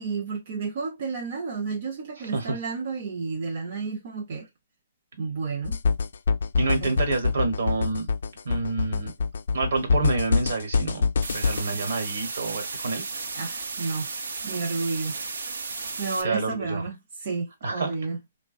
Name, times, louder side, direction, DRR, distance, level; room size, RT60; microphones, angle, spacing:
voice 1, 0.0-4.5 5.2-5.8 6.8-7.0 9.8-9.9 13.3-14.1 14.4-15.2 15.5-18.2, right 4 dB, 35° right, 0.5 m, -31 dB
sound 1, 5.6-11.6, left 5 dB, 70° left, 0.3 m, -25 dB
voice 2, 6.6-8.1 8.4-9.1 9.5-11.1 11.3-13.0 16.2-16.8 17.6-18.0, right 3 dB, 60° right, 1.1 m, -28 dB
sound 2, 11.2-16.2, right 4 dB, 85° right, 0.6 m, -34 dB
3.3 x 2.1 x 2.4 m
hypercardioid pair, 180°, 0 cm